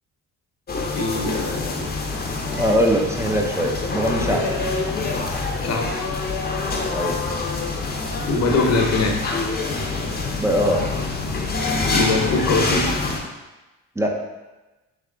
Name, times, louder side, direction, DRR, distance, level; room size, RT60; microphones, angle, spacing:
sound 1, 0.7-13.2, left 3 dB, 30° left, 0.7 m, -26 dB
voice 1, 0.9-1.9 4.2-4.5 5.6-5.9 8.2-9.2 11.9-12.9, left 3 dB, 60° left, 1 dB, 0.9 m, -22 dB
voice 2, 2.6-4.5 6.9-7.2 10.4-10.9 14.0-14.1, equal, 10° right, 1 dB, 0.5 m, -21 dB
3.5 x 3.3 x 3.8 m, 1.1 s
cardioid pair, 90°, 30 cm